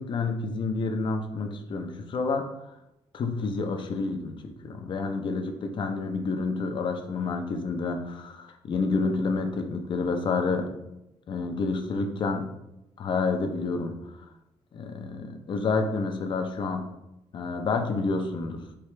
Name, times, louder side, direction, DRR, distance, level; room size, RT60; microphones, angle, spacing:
voice 1, 0.0-2.5 3.1-10.7 11.3-12.5 13.0-13.9 14.7-16.8 17.3-18.6, left 4 dB, 45° left, 5 dB, 0.5 m, -29 dB
4.7 x 2.8 x 3.2 m, 0.88 s
wide cardioid pair, 160°, 11 cm